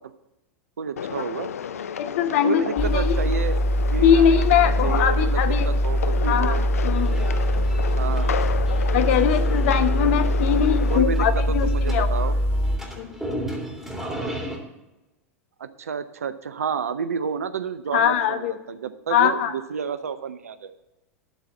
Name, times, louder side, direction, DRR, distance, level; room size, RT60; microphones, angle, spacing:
voice 1, 0.8-1.5 2.4-3.5 3.9-4.5 4.8-6.7 8.0-8.3 10.9-12.4 15.6-20.7, right 6 dB, 75° right, 13 dB, 0.6 m, -30 dB
sound 1, 1.0-11.0, left 8 dB, 75° left, 0.4 m, -32 dB
voice 2, 2.0-3.2 4.0-5.7 6.3-7.2 8.9-12.1 13.0-13.1 17.9-18.5 19.1-19.5, left 9 dB, 55° left, 9 dB, 1.0 m, -22 dB
sound 2, 2.8-12.8, equal, 25° left, 2.2 m, -22 dB
sound 3, 6.9-14.6, equal, 5° right, 2.5 m, -36 dB
12.0 x 4.2 x 7.1 m, 1.0 s
figure-of-eight pair, 90°, 8 cm